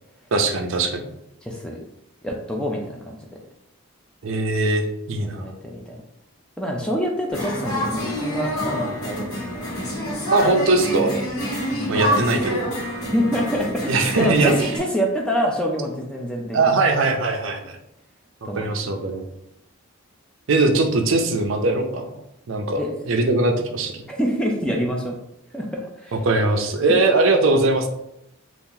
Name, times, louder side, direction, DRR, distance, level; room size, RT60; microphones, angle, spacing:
voice 1, 0.3-1.1 4.2-5.5 10.3-11.2 11.9-12.6 13.9-14.7 16.5-17.8 18.5-19.2 20.5-22.1 22.5-24.0 26.1-27.9, right 3 dB, 60° right, 4 dB, 0.4 m, -20 dB
voice 2, 1.4-1.8 2.2-3.2 5.2-6.0 6.6-9.3 11.7-12.2 13.1-16.6 18.4-18.6 22.8-22.9 24.1-25.2 25.5-26.2 26.9-27.0, equal, 5° left, 0 dB, 0.3 m, -26 dB
sound 1, 7.3-14.8, equal, 80° left, 1.2 m, -27 dB
2.7 x 2.4 x 3.7 m, 0.81 s
head